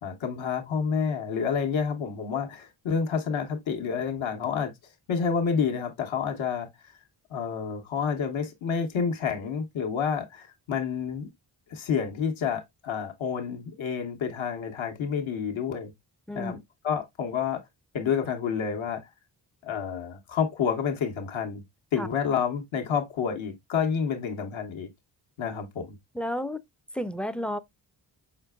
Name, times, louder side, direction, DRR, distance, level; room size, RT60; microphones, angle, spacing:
voice 1, 0.0-4.7 5.1-7.0 7.3-11.3 11.7-15.9 16.3-16.6 16.8-17.6 17.9-19.0 19.6-21.6 21.9-24.9 25.4-26.0, left 6 dB, 70° left, 1.0 m, -29 dB
voice 2, 26.1-26.6 26.9-27.6, equal, 5° left, 0.3 m, -31 dB
5.0 x 3.8 x 2.2 m
supercardioid pair, 45°, 48 cm